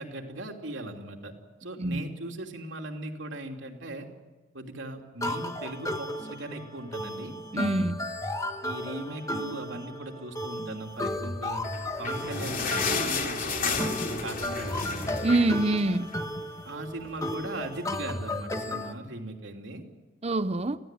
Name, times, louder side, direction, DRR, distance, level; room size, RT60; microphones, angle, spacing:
voice 1, 0.0-1.3 1.6-4.1 4.5-7.3 8.6-11.6 12.0-15.0 16.6-19.8, right 1 dB, 85° right, 3.1 m, -38 dB
sound 1, 5.2-18.9, left 1 dB, 20° left, 1.5 m, -34 dB
voice 2, 7.5-8.0 15.2-16.1 20.2-20.8, right 2 dB, 35° right, 0.7 m, -25 dB
sound 2, 11.6-16.3 16.7-16.8 17.1-17.3 17.9-18.0, left 4 dB, 50° left, 3.3 m, -32 dB
27.0 x 16.0 x 9.2 m
head